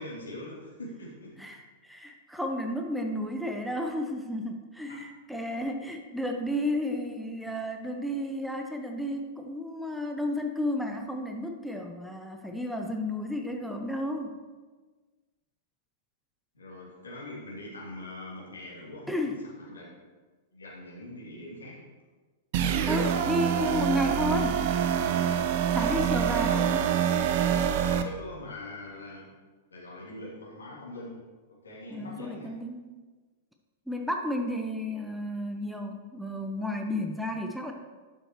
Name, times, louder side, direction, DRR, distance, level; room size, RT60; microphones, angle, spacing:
voice 1, 0.0-1.3 4.9-5.0 16.5-19.9 20.5-21.8 25.6-26.1 26.4-26.6 27.8-29.3 29.7-31.2 31.5-32.5, left 1 dB, 75° left, -5 dB, 2.6 m, -43 dB
voice 2, 1.4-14.3 19.1-19.4 22.9-24.6 25.7-26.9 31.9-32.9 33.9-37.7, left 1 dB, ahead, 3 dB, 0.6 m, -32 dB
sound 1, 22.5-28.0, right 8 dB, 45° right, 0.5 m, -26 dB
11.0 x 6.4 x 3.0 m, 1.4 s
figure-of-eight pair, 100°, 0 cm